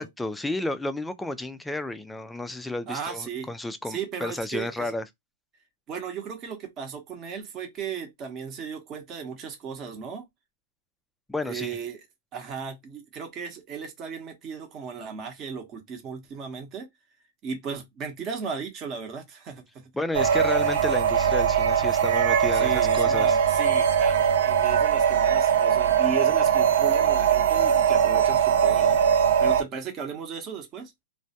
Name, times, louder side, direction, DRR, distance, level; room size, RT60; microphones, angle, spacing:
voice 1, 0.0-5.0 11.3-11.8 19.9-23.4, left 2 dB, 5° left, 0.3 m, -32 dB
voice 2, 2.9-3.5 3.9-4.9 5.9-10.2 11.4-12.0 12.3-16.9 17.4-19.9 22.5-30.9, right 6 dB, 30° right, 0.8 m, -36 dB
sound 1, 20.1-29.6, right 8 dB, 65° right, 0.4 m, -21 dB
2.1 x 2.1 x 2.7 m
hypercardioid pair, 140°, 0 cm